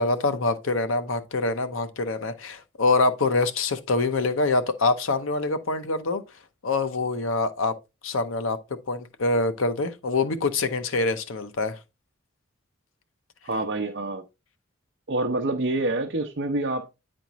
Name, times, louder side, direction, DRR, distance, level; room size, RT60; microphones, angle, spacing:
voice 1, 0.0-6.2 6.6-7.7 8.0-8.6 8.9-11.8, left 3 dB, 80° left, 0.8 m, -25 dB
voice 2, 13.4-14.2 15.1-16.9, right 2 dB, 55° right, 0.7 m, -27 dB
9.1 x 4.4 x 3.0 m
head